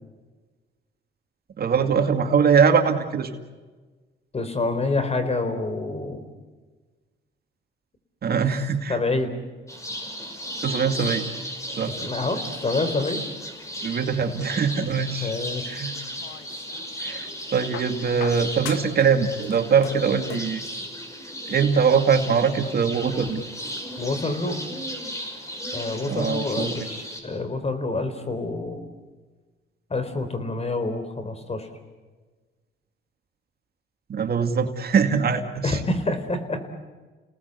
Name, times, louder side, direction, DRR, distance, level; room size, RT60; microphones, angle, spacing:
voice 1, 1.6-3.4 8.2-9.0 10.6-11.2 11.8-11.9 13.8-15.3 15.7-15.9 17.0-20.6 21.5-23.4 26.0-26.7 34.1-35.8, right 6 dB, 50° right, 6 dB, 2.3 m, -22 dB
voice 2, 4.3-6.3 8.3-8.4 8.9-9.3 12.0-13.2 15.2-15.9 24.0-24.6 25.7-28.9 29.9-31.7 35.6-36.7, left 2 dB, 30° left, 9 dB, 4.0 m, -27 dB
sound 1, 9.7-27.2, equal, 15° left, 6.0 m, -35 dB
sound 2, 15.9-16.9 17.7-19.1 19.3-20.6 21.7-21.8, left 11 dB, 80° left, 1.3 m, -39 dB
30.0 x 18.5 x 8.3 m, 1.3 s
cardioid pair, 90°, 20 cm